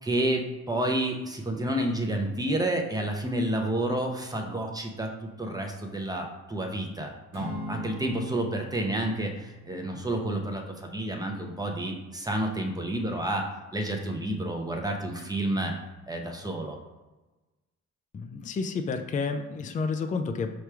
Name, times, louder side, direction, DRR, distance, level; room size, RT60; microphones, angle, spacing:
voice 1, 0.0-13.5 13.7-15.7 16.1-16.8, right 1 dB, 15° right, 2 dB, 0.7 m, -30 dB
Acoustic guitar / Strum, 7.3-11.8, equal, 85° right, 1.4 m, -42 dB
voice 2, 18.1-20.5, left 4 dB, 25° left, 7 dB, 0.4 m, -30 dB
4.7 x 3.0 x 3.4 m, 1.1 s
cardioid pair, 90°, 30 cm